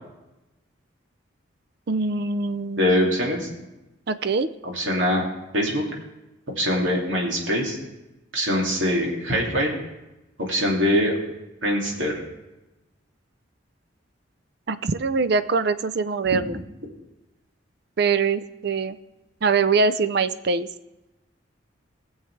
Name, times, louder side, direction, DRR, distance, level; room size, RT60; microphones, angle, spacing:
voice 1, 1.9-3.1 4.1-4.5 14.7-16.6 18.0-19.0 19.4-20.7, right 4 dB, 55° right, 13 dB, 0.5 m, -23 dB
voice 2, 2.8-3.5 4.6-5.2 5.5-5.8 6.6-7.8 8.3-9.7 10.4-11.1 11.6-12.2, equal, 75° right, -2 dB, 2.5 m, -23 dB
18.5 x 7.3 x 3.2 m, 1.0 s
head